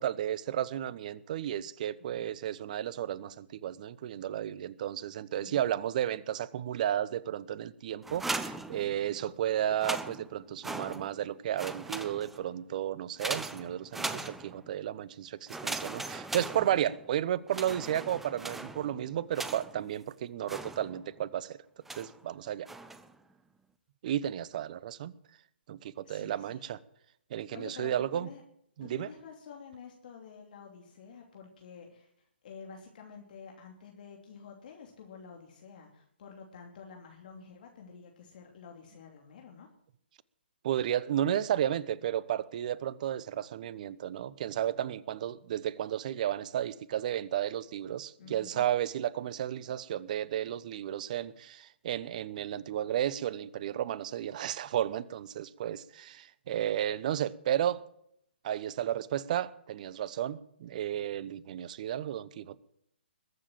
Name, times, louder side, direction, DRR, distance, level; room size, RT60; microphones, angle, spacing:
voice 1, 0.0-21.6 22.0-22.7 24.0-25.1 25.7-26.8 27.3-28.3 28.8-29.1 40.6-57.8 58.4-62.6, right 11 dB, 45° right, 18 dB, 0.9 m, -33 dB
sound 1, 8.0-9.3 9.7-11.3 11.5-12.5 13.2-14.8 15.5-17.1 17.5-19.9 20.5-21.2 21.9-22.2 22.6-23.1, right 2 dB, 5° right, 0.7 m, -39 dB
voice 2, 14.0-14.3 26.0-26.6 27.5-28.4 28.8-32.1 32.4-39.7 48.2-48.7, left 6 dB, 50° left, 2 dB, 2.9 m, -49 dB
21.0 x 7.5 x 7.5 m, 0.72 s
hypercardioid pair, 140°, 6 cm